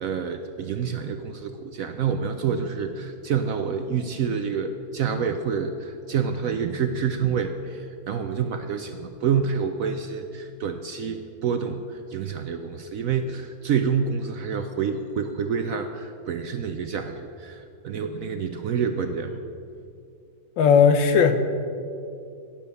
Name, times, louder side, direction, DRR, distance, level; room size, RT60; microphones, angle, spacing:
voice 1, 0.0-19.4, right 6 dB, 65° right, 8 dB, 0.8 m, -28 dB
voice 2, 20.6-21.3, left 6 dB, 90° left, 8 dB, 1.7 m, -16 dB
16.0 x 7.1 x 6.9 m, 2.4 s
omnidirectional pair, 2.0 m